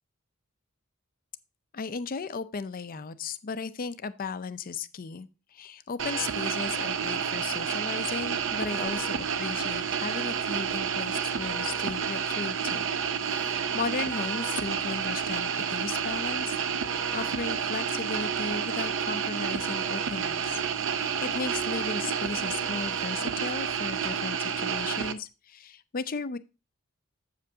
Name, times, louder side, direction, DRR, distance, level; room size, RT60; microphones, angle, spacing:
voice 1, 1.7-12.9 13.3-16.6 16.9-20.6 20.9-26.4, left 4 dB, 40° left, 13 dB, 0.5 m, -36 dB
sound 1, 6.0-25.1, right 7 dB, 60° right, 0.6 m, -30 dB
7.9 x 7.6 x 2.7 m, 0.30 s
head